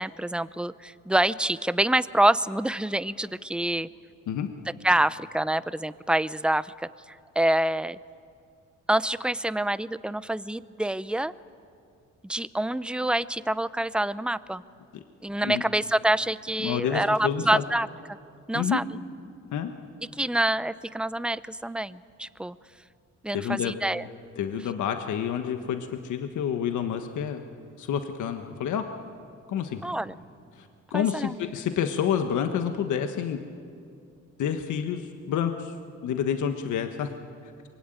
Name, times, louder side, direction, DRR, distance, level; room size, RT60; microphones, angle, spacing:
voice 1, 0.0-3.9 4.8-8.0 8.9-11.3 12.2-14.6 15.2-17.9 18.5-18.8 20.2-22.6 23.2-24.0 29.8-30.1 30.9-31.3, right 1 dB, 5° right, 15 dB, 0.6 m, -26 dB
voice 2, 16.6-17.6 18.5-18.8 19.5-19.7 23.3-23.8 24.4-27.4 27.8-28.8 29.5-29.8 30.5-33.4 34.4-35.7 36.0-37.1, left 8 dB, 75° left, 6 dB, 1.4 m, -28 dB
25.0 x 23.0 x 9.1 m, 2.4 s
cardioid pair, 90°, 30 cm